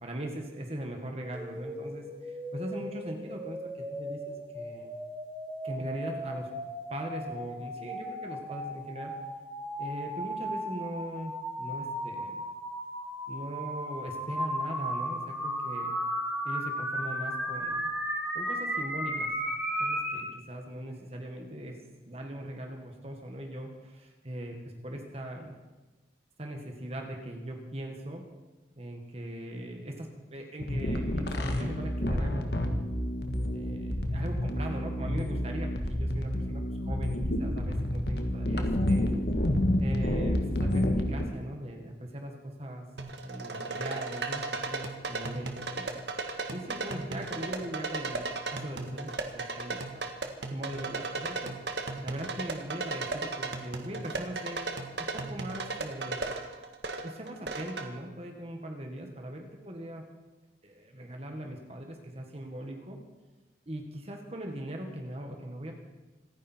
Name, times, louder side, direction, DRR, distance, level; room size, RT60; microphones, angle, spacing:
voice 1, 0.0-4.9 5.6-6.5 6.9-9.1 9.8-12.4 13.3-15.9 16.4-17.9 18.3-19.3 19.8-21.8 22.1-24.6 24.8-25.6 26.4-28.3 28.8-32.8 33.5-39.1 39.8-42.3 42.6-42.9 43.2-45.9 46.5-50.1 50.5-51.6 52.0-54.6 55.0-56.2 57.0-60.0 60.6-63.0 63.7-65.7, right 1 dB, 35° right, 2 dB, 1.8 m, -40 dB
sound 1, 1.3-20.2, equal, 5° right, 2.8 m, -35 dB
sound 2, 30.6-41.3, left 1 dB, 65° left, 1.7 m, -29 dB
sound 3, 43.0-57.9, right 3 dB, 75° right, 1.7 m, -36 dB
26.0 x 10.0 x 4.6 m, 1.2 s
head